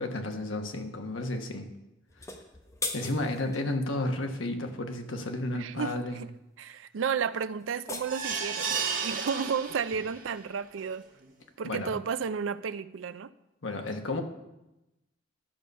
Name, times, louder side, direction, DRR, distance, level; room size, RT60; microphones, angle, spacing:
voice 1, 0.0-1.7 2.9-6.2 11.6-11.9 13.6-14.2, left 2 dB, 85° left, 5 dB, 1.2 m, -32 dB
sound 1, 2.1-3.6 7.6-9.1, left 3 dB, 15° left, 0.9 m, -39 dB
voice 2, 5.5-6.3 6.6-11.0 11.6-13.3, right 6 dB, 85° right, 15 dB, 0.4 m, -32 dB
sound 2, 8.1-10.3 10.8-10.9 11.2-11.3, right 6 dB, 45° right, 1.3 m, -33 dB
12.0 x 6.9 x 5.4 m, 0.96 s
head